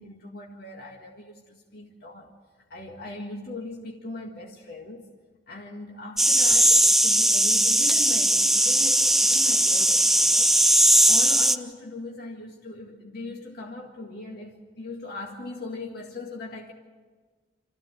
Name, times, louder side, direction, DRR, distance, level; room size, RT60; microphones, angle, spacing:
voice 1, 0.0-2.3 2.7-5.1 5.5-10.7 11.1-16.7, left 2 dB, 60° left, 0 dB, 1.9 m, -39 dB
sound 1, 6.2-11.6, right 1 dB, ahead, 0.5 m, -19 dB
25.5 x 15.0 x 7.8 m, 1.5 s
head